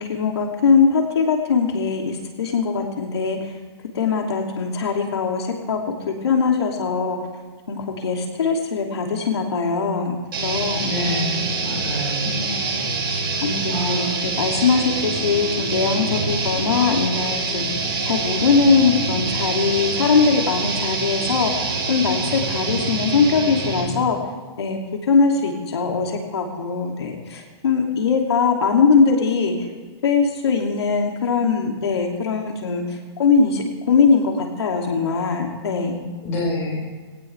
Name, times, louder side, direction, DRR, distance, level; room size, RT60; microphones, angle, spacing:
voice 1, 0.0-3.5 3.9-5.8 6.1-7.2 7.7-10.2 10.4-11.0 12.2-12.6 13.1-14.0 14.4-24.2 24.6-24.8 25.1-29.5 30.0-36.0, left 5 dB, 75° left, 1 dB, 2.9 m, -21 dB
sound 1, 10.3-24.0, right 3 dB, 55° right, 6.6 m, -25 dB
voice 2, 10.8-12.7 13.7-14.1 36.2-36.9, left 1 dB, 20° left, -3 dB, 5.1 m, -27 dB
20.0 x 18.0 x 3.5 m, 1.4 s
hypercardioid pair, 175°, 14 cm